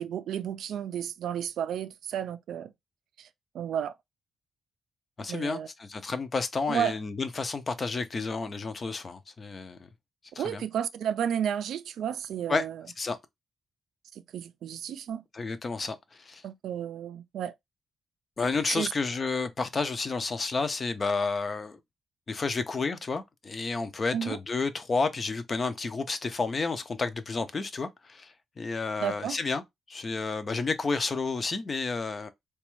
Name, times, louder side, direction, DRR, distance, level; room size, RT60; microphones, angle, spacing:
voice 1, 0.0-2.7 3.2-3.3 3.5-3.9 5.3-5.7 6.7-7.0 10.4-12.8 14.1-15.2 16.4-17.5 18.7-18.9 24.1-24.4 29.0-29.4, right 9 dB, 90° right, 0.3 m, -32 dB
voice 2, 5.2-9.8 10.4-10.6 12.5-12.6 13.0-13.2 15.3-16.0 16.2-16.4 18.4-21.8 22.3-28.3 28.6-29.6 29.9-32.3, left 4 dB, 30° left, 0.4 m, -31 dB
4.0 x 2.2 x 3.0 m
wide cardioid pair, 165°, 0 cm